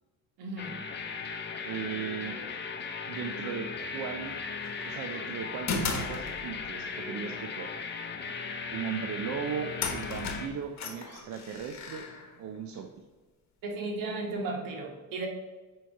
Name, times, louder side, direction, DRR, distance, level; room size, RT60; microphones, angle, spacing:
voice 1, 0.4-0.7 13.6-15.3, right 2 dB, 75° right, 1 dB, 1.4 m, -35 dB
sound 1, 0.6-10.5, left 5 dB, 35° left, 0.6 m, -37 dB
voice 2, 1.6-2.4 3.1-4.4 4.8-7.7 8.7-12.1 12.4-13.0, right 7 dB, 60° right, 4 dB, 0.5 m, -37 dB
sound 2, 4.6-5.0 5.7-6.8 9.2-9.3 9.8-12.8, left 4 dB, 55° left, 1.1 m, -36 dB
7.4 x 2.9 x 4.5 m, 1.3 s
cardioid pair, 120°, 33 cm